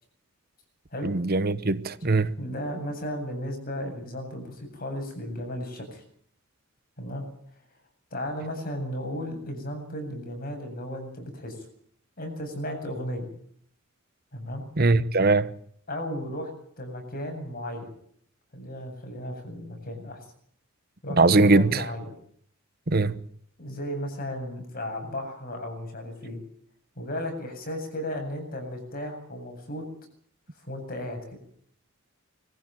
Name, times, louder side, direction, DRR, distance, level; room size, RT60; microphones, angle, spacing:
voice 1, 1.0-2.3 14.8-15.5 21.2-21.8 22.9-23.2, right 3 dB, 45° right, 1.0 m, -21 dB
voice 2, 2.4-6.0 7.0-7.2 8.1-11.7 12.2-13.3 14.3-14.6 15.9-16.5 16.8-17.9 18.5-20.3 21.0-22.1 23.6-26.4 27.0-29.8 30.6-31.2, equal, 40° left, 7.9 m, -35 dB
21.5 x 15.0 x 9.2 m
head